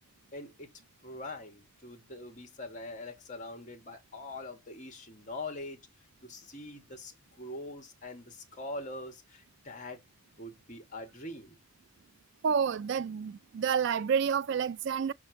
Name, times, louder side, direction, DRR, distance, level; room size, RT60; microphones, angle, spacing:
voice 1, 0.3-0.7 1.0-5.8 6.2-7.1 7.4-10.0 10.4-11.6, left 2 dB, 35° left, 1.7 m, -43 dB
voice 2, 12.4-15.1, right 7 dB, 50° right, 0.3 m, -29 dB
6.0 x 3.6 x 4.6 m
head